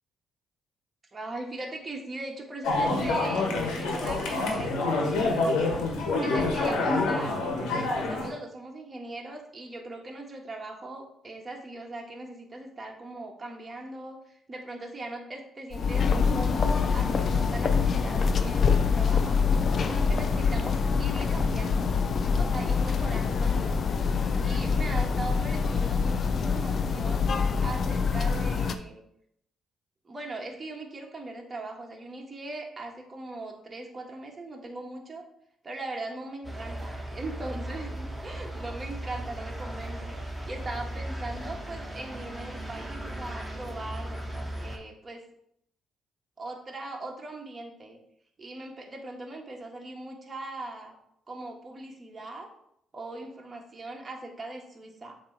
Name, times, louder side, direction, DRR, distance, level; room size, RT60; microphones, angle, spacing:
voice 1, 1.1-5.8 6.1-7.4 7.7-16.1 16.3-19.5 19.9-21.9 22.4-23.8 24.4-27.3 27.6-29.0 30.0-35.2 35.6-44.2 44.6-45.2 46.4-48.0 48.4-50.9 51.3-52.5 52.9-55.1, right 2 dB, 30° right, 0 dB, 1.4 m, -40 dB
sound 1, 2.6-8.3, left 3 dB, 90° left, 1.3 m, -27 dB
sound 2, 15.7-28.8, left 5 dB, 50° left, 0.5 m, -25 dB
sound 3, 36.4-44.8, right 1 dB, 5° right, 1.2 m, -37 dB
7.4 x 3.0 x 4.4 m, 0.72 s
cardioid pair, 90°, 0 cm